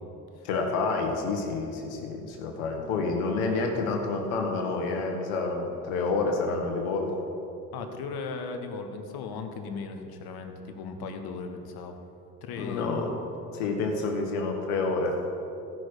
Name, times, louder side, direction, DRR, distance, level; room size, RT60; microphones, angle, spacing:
voice 1, 0.4-7.2 12.6-13.1 13.5-15.2, left 3 dB, 75° left, 3 dB, 1.7 m, -28 dB
voice 2, 7.7-12.0 12.4-12.9, left 4 dB, 55° left, 6 dB, 1.4 m, -37 dB
15.5 x 6.2 x 5.0 m, 2.9 s
hypercardioid pair, 65°, 44 cm